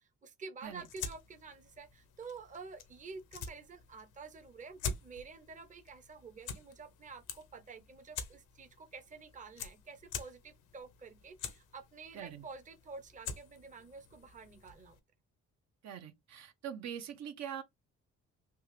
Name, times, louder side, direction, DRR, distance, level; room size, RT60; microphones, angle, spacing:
voice 1, 0.0-15.0, right 4 dB, 25° right, 0.7 m, -49 dB
sound 1, 0.6-15.0, left 6 dB, 90° left, 0.8 m, -47 dB
voice 2, 15.8-17.6, right 9 dB, 65° right, 0.7 m, -43 dB
3.5 x 2.4 x 3.2 m
cardioid pair, 90°, 30 cm